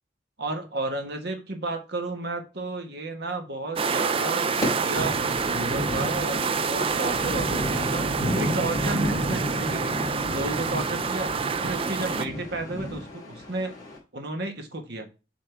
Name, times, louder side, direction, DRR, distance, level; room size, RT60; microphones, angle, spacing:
voice 1, 0.4-10.0 10.3-11.3 11.6-13.7 14.1-15.1, right 2 dB, 60° right, 5 dB, 1.4 m, -32 dB
sound 1, 3.8-12.3, right 5 dB, 30° right, 0.4 m, -27 dB
sound 2, 4.6-14.0, equal, 20° left, 3.1 m, -32 dB
7.3 x 3.9 x 3.4 m, 0.30 s
head